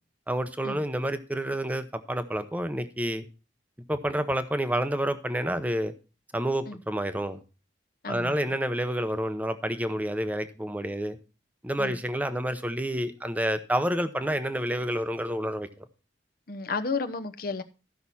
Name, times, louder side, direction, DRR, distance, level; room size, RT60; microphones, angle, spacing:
voice 1, 0.3-3.2 3.9-5.9 6.3-7.4 8.1-11.2 11.6-15.7, right 1 dB, 10° right, 0.7 m, -29 dB
voice 2, 8.0-8.5 11.8-12.0 16.5-17.6, left 4 dB, 50° left, 0.8 m, -33 dB
14.0 x 5.9 x 4.1 m
head